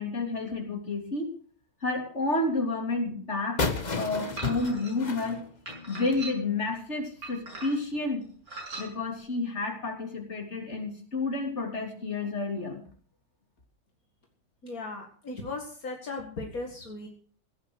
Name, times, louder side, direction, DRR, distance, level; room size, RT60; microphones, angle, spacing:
voice 1, 0.0-1.3 1.8-5.4 5.9-8.3 8.8-12.8, left 3 dB, 50° left, 2 dB, 3.6 m, -30 dB
sound 1, 3.6-6.3, left 4 dB, 30° left, 1.4 m, -32 dB
sound 2, 4.4-4.9 5.7-6.6 7.2-7.9 8.5-8.9, right 3 dB, 85° right, 7.3 m, -40 dB
voice 2, 14.6-17.1, left 3 dB, 75° left, 1 dB, 2.5 m, -37 dB
17.0 x 9.5 x 6.4 m, 0.43 s
omnidirectional pair, 1.5 m